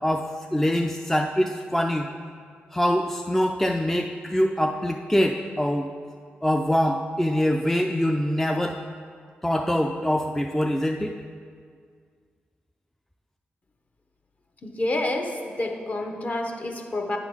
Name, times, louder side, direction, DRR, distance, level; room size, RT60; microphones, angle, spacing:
voice 1, 0.0-2.1 2.7-5.9 6.4-8.8 9.4-11.1, equal, 5° left, 3 dB, 0.4 m, -24 dB
voice 2, 14.6-17.2, left 2 dB, 35° left, 4 dB, 0.9 m, -28 dB
8.9 x 3.8 x 6.1 m, 2.1 s
cardioid pair, 70°, 4 cm